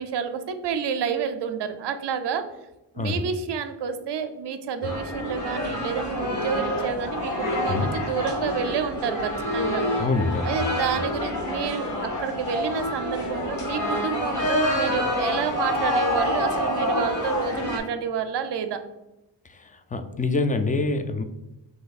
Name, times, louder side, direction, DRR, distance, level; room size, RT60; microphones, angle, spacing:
voice 1, 0.0-2.4 3.0-9.8 10.4-11.9 12.2-18.8, right 6 dB, 70° right, 9 dB, 0.5 m, -29 dB
voice 2, 2.9-3.3 4.8-4.9 7.7-7.9 10.0-10.8 19.4-21.2, left 3 dB, 20° left, 8 dB, 0.3 m, -26 dB
sound 1, 4.8-17.8, left 1 dB, 45° left, 0.9 m, -27 dB
2.9 x 2.6 x 4.0 m, 0.95 s
cardioid pair, 60°, 43 cm